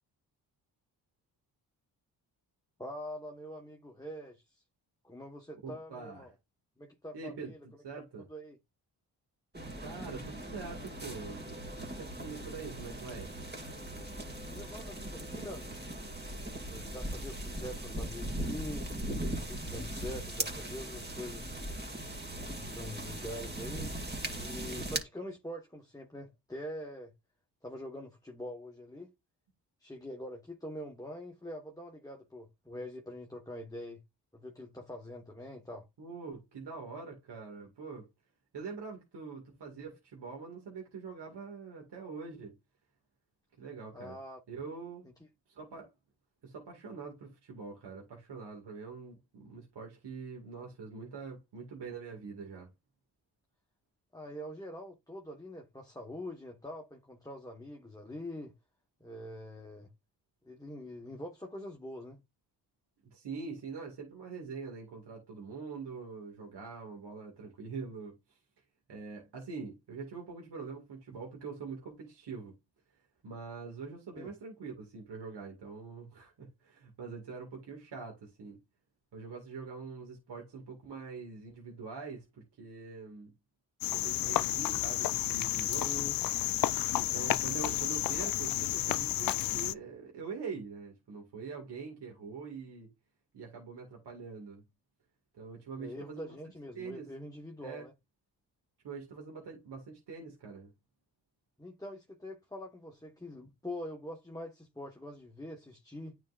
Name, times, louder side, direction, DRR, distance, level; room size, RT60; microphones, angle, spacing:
voice 1, 2.8-4.6 5.0-6.3 6.8-7.6 8.3-8.6 14.5-15.8 16.7-18.9 19.4-21.7 22.3-23.9 24.3-27.1 27.6-29.1 29.8-34.0 34.3-35.9 43.9-44.4 54.1-58.5 59.0-59.9 60.4-62.2 74.1-74.3 85.7-86.2 95.8-97.9 101.6-106.2, left 1 dB, 10° left, 1.3 m, -44 dB
voice 2, 5.6-6.3 7.1-8.3 9.8-11.4 11.8-13.3 36.0-38.1 38.5-42.5 43.6-44.2 44.5-45.0 45.5-45.9 46.4-52.7 63.1-68.4 68.9-72.5 73.2-78.6 79.1-82.3 82.6-83.3 83.9-86.0 86.9-92.9 93.3-94.6 95.3-96.4 96.7-97.1 97.6-97.8 98.8-100.7, right 5 dB, 65° right, 2.2 m, -44 dB
sound 1, 9.5-25.0, right 1 dB, 20° right, 2.4 m, -39 dB
Cricket, 83.8-89.7, left 14 dB, 55° left, 0.5 m, -31 dB
9.3 x 4.5 x 2.5 m
supercardioid pair, 50°, 44 cm